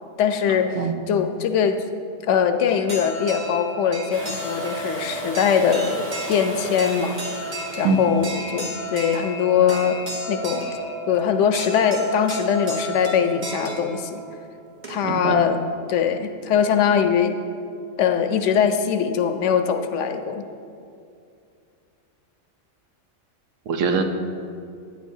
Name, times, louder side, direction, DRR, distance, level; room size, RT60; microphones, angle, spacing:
voice 1, 0.2-0.8 1.1-1.8 2.2-7.5 7.8-10.0 10.3-10.7 11.1-14.2 14.9-15.6 15.9-17.3 18.0-20.4, left 7 dB, 75° left, 7 dB, 0.9 m, -22 dB
sound 1, 2.7-15.3, right 1 dB, 40° right, 1.2 m, -33 dB
Domestic sounds home sounds, 4.1-9.9 11.8-11.9, right 2 dB, 55° right, 1.5 m, -37 dB
voice 2, 15.0-15.4 23.7-24.1, right 4 dB, 85° right, 6 dB, 1.0 m, -22 dB
10.0 x 9.3 x 2.7 m, 2.4 s
omnidirectional pair, 1.3 m